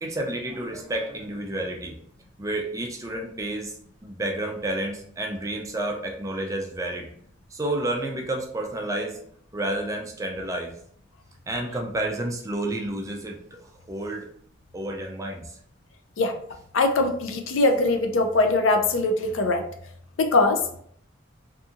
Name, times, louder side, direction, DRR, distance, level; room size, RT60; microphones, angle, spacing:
voice 1, 0.0-1.9 2.4-3.7 4.0-7.1 7.5-9.2 9.5-10.7 11.5-13.6 13.9-14.3 14.7-15.4, right 1 dB, 15° right, 2 dB, 0.3 m, -30 dB
voice 2, 16.7-19.6 20.2-20.6, left 2 dB, 80° left, 5 dB, 0.4 m, -21 dB
2.6 x 2.6 x 2.4 m, 0.64 s
head